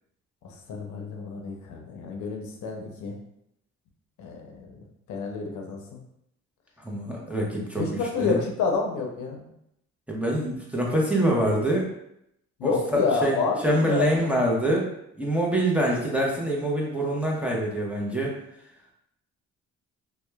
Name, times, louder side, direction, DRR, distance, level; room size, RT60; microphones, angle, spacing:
voice 1, 0.4-3.1 4.2-4.8 5.1-6.0 7.8-9.5 12.6-14.3, left 4 dB, 75° left, 1 dB, 0.6 m, -29 dB
voice 2, 6.8-8.4 10.1-11.9 12.6-13.4 13.6-14.9 15.2-18.3, right 1 dB, 5° right, -4 dB, 0.6 m, -25 dB
2.8 x 2.2 x 2.2 m, 0.77 s
cardioid pair, 90°, 30 cm